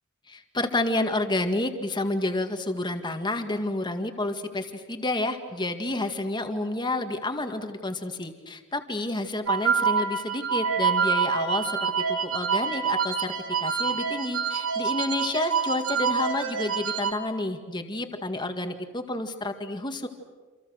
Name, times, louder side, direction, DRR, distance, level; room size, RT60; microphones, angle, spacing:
voice 1, 0.3-13.3 13.6-20.1, left 2 dB, 20° left, 6 dB, 2.0 m, -30 dB
sound 1, 9.5-17.1, right 6 dB, 80° right, 2.3 m, -26 dB
29.0 x 27.0 x 6.5 m, 1.4 s
head